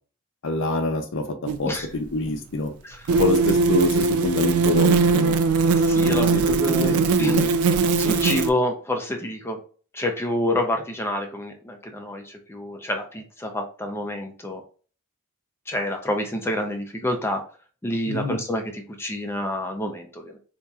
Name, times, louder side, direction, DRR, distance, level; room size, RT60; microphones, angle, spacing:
voice 1, 0.4-2.7 3.1-5.4 6.0-7.5 18.1-18.4, left 2 dB, 60° left, 7 dB, 0.6 m, -26 dB
sound 1, 1.5-1.6 3.1-8.5, right 4 dB, 75° right, 0.4 m, -20 dB
voice 2, 5.8-7.4 8.0-9.6 9.9-14.6 15.7-17.4 17.8-20.4, left 1 dB, 10° left, 4 dB, 0.5 m, -28 dB
4.2 x 2.5 x 2.3 m, 0.40 s
head